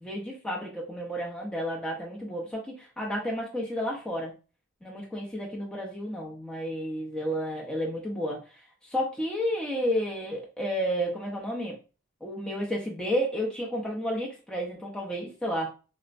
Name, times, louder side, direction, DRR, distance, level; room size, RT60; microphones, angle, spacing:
voice 1, 0.0-4.3 4.8-8.4 8.8-11.8 12.2-15.7, equal, 5° left, -3 dB, 0.5 m, -31 dB
4.2 x 2.1 x 2.4 m, 0.33 s
head